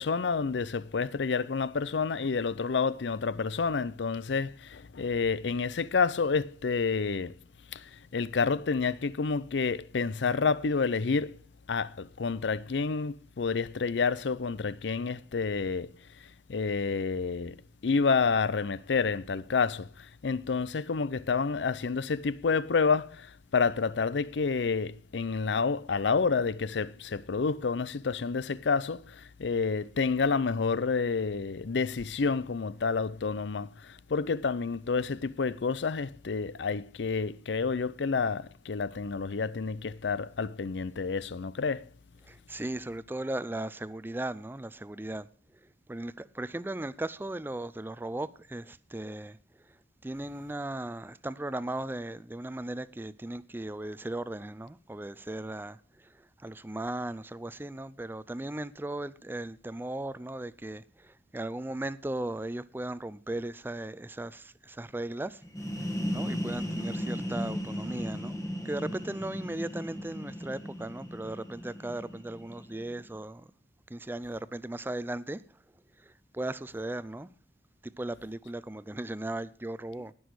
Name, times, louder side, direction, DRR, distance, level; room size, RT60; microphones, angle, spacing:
voice 1, 0.0-7.4 7.7-11.4 11.7-15.9 16.5-17.6 17.8-41.9, left 5 dB, 85° left, 0.5 m, -29 dB
voice 2, 42.2-45.3 45.9-49.4 50.0-65.4 65.8-68.4 68.6-73.5 73.9-75.4 76.0-77.3 77.8-80.1, right 1 dB, 10° right, 0.4 m, -37 dB
sound 1, 65.4-73.0, equal, 20° left, 1.4 m, -36 dB
18.5 x 6.2 x 4.7 m
head